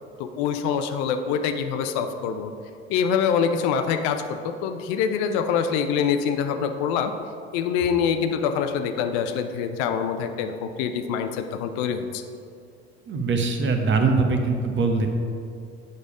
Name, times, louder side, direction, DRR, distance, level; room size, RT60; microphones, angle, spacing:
voice 1, 0.2-2.5 2.9-7.1 7.5-12.2, left 7 dB, 55° left, 8 dB, 0.6 m, -25 dB
voice 2, 13.1-15.1, right 4 dB, 35° right, 4 dB, 1.1 m, -22 dB
8.2 x 5.2 x 4.9 m, 2.4 s
figure-of-eight pair, 60°, 32 cm